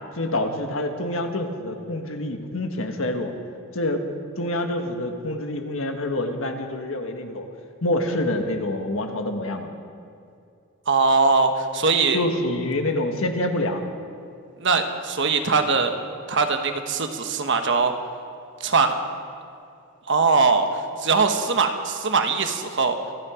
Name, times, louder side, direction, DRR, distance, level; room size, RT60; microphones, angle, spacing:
voice 1, 0.1-3.3 3.7-4.0 4.4-7.4 7.8-9.7 12.1-13.8, left 1 dB, 65° left, 5 dB, 1.5 m, -26 dB
voice 2, 10.9-12.2 14.6-15.9 16.3-17.9 18.6-18.9 20.1-23.0, right 4 dB, 55° right, 6 dB, 1.2 m, -21 dB
26.0 x 9.9 x 5.0 m, 2.5 s
head